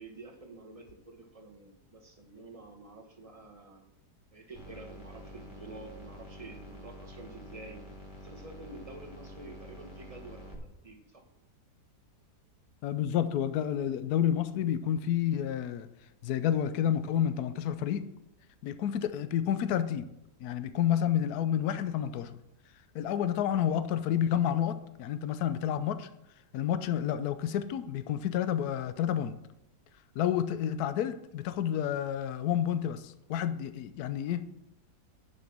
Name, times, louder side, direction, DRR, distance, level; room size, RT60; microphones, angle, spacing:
voice 1, 0.0-3.9 4.3-7.8 8.2-11.2, right 2 dB, 20° right, 2 dB, 1.2 m, -49 dB
sound 1, 4.5-10.6, equal, 30° left, 1.9 m, -48 dB
voice 2, 12.8-15.9 16.2-18.0 18.6-20.1 20.4-22.3 22.9-26.1 26.5-29.3 30.1-34.5, left 10 dB, 70° left, 12 dB, 1.1 m, -30 dB
9.9 x 6.3 x 6.0 m, 0.85 s
omnidirectional pair, 1.8 m